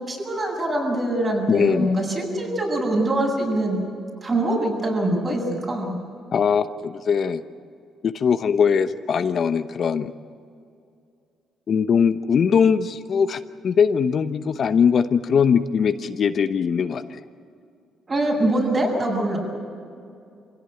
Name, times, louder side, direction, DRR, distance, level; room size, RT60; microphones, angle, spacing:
voice 1, 0.0-3.8 4.2-6.0 18.1-19.4, right 1 dB, 35° right, -1 dB, 7.8 m, -23 dB
voice 2, 1.5-1.9 6.3-7.4 8.0-10.1 11.7-17.2, left 6 dB, 55° left, 10 dB, 0.9 m, -21 dB
25.5 x 17.0 x 9.1 m, 2.4 s
cardioid pair, 90°, 0 cm